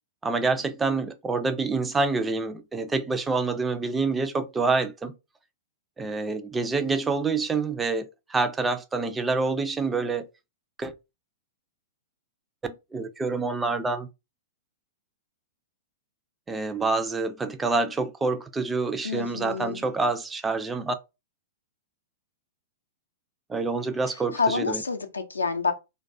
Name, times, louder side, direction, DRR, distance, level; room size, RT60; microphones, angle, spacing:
voice 1, 0.2-5.1 6.0-10.3 10.8-10.9 12.6-14.1 16.5-21.0 23.5-24.8, right 3 dB, 15° right, 0.3 m, -27 dB
voice 2, 19.0-19.8 24.1-25.7, left 4 dB, 80° left, 0.4 m, -28 dB
2.2 x 2.2 x 2.5 m
figure-of-eight pair, 105°, 0 cm